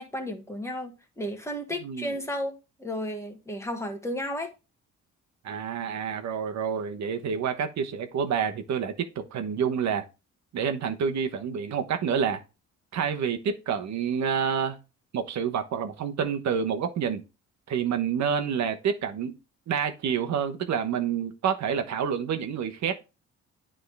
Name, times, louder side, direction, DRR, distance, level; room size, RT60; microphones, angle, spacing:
voice 1, 0.0-4.5, equal, 10° left, 1.6 m, -33 dB
voice 2, 1.8-2.1 5.4-10.0 10.5-12.4 12.9-14.8 15.1-17.2 17.7-19.3 19.7-22.9, right 7 dB, 65° right, 1.1 m, -28 dB
9.5 x 3.7 x 3.4 m
cardioid pair, 90°, 30 cm